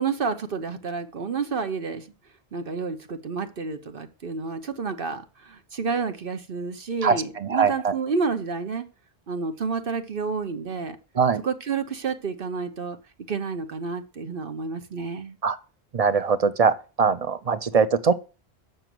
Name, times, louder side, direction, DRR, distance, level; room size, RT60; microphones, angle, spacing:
voice 1, 0.0-2.1 2.5-8.8 9.3-11.0 11.4-13.0 13.3-15.4, right 5 dB, 60° right, 1.1 m, -30 dB
voice 2, 7.4-7.9 11.2-11.4 15.4-15.6 15.9-18.1, right 5 dB, 40° right, 0.7 m, -21 dB
6.7 x 6.5 x 7.6 m
omnidirectional pair, 1.1 m